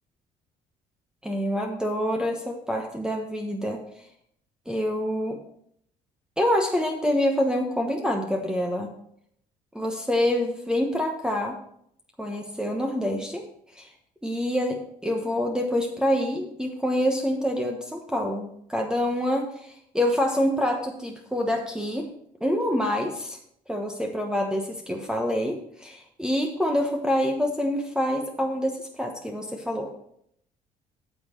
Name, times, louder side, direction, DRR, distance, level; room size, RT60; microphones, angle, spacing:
voice 1, 1.2-3.8 4.7-5.4 6.4-8.9 9.7-11.6 12.2-13.4 13.7-13.9 14.2-22.1 22.4-23.4 23.7-29.9, equal, 5° right, 2 dB, 1.1 m, -26 dB
8.5 x 7.1 x 4.5 m, 0.70 s
cardioid pair, 90°, 15 cm